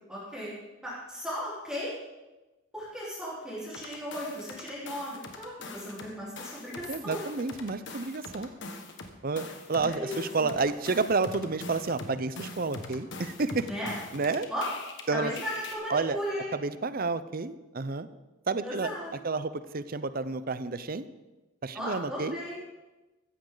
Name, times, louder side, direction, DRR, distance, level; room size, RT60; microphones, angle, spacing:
voice 1, 0.1-0.5 0.8-1.9 2.7-7.2 9.8-10.5 13.7-13.9 14.5-14.6 15.1-16.5 18.6-19.1 21.7-22.6, equal, 5° right, -8 dB, 4.2 m, -36 dB
sound 1, 3.7-6.1 6.4-15.0 15.4-15.7, left 3 dB, 60° left, 1.7 m, -42 dB
voice 2, 6.9-8.5 9.2-13.7 14.1-14.5 15.1-15.3 15.9-16.2 16.5-18.1 18.5-18.9 19.2-21.0 21.6-22.4, right 4 dB, 45° right, 14 dB, 0.6 m, -30 dB
16.0 x 14.0 x 3.9 m, 1.1 s
head